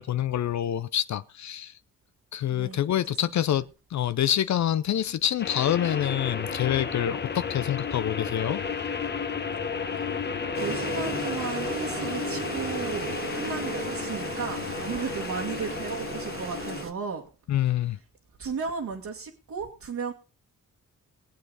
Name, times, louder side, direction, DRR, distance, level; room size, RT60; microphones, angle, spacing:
voice 1, 0.0-1.8 2.3-8.6 17.5-18.0, left 11 dB, 60° left, 0.6 m, -26 dB
voice 2, 3.3-3.6 9.9-10.1 10.6-17.2 18.4-20.1, right 5 dB, 65° right, 1.9 m, -35 dB
sound 1, 5.4-16.8, left 5 dB, 35° left, 1.1 m, -33 dB
sound 2, 6.2-13.3, left 1 dB, 5° left, 0.9 m, -48 dB
Engine, 10.5-16.9, right 4 dB, 40° right, 1.6 m, -36 dB
21.0 x 7.9 x 4.0 m
cardioid pair, 100°, 32 cm